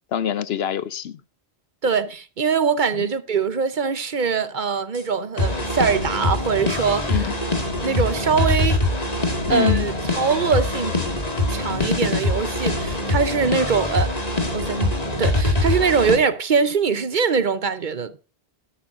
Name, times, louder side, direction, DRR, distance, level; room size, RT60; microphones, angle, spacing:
voice 1, 0.1-1.2 2.9-3.1 7.1-7.4 9.5-9.9, left 9 dB, 75° left, 0.9 m, -25 dB
voice 2, 1.8-7.3 7.8-8.8 9.5-10.9 11.5-14.1 14.5-14.9 15.2-18.1, right 5 dB, 50° right, 0.9 m, -22 dB
sound 1, 4.9-5.0 5.4-16.2, left 2 dB, 40° left, 2.1 m, -23 dB
12.0 x 11.0 x 2.6 m
omnidirectional pair, 1.1 m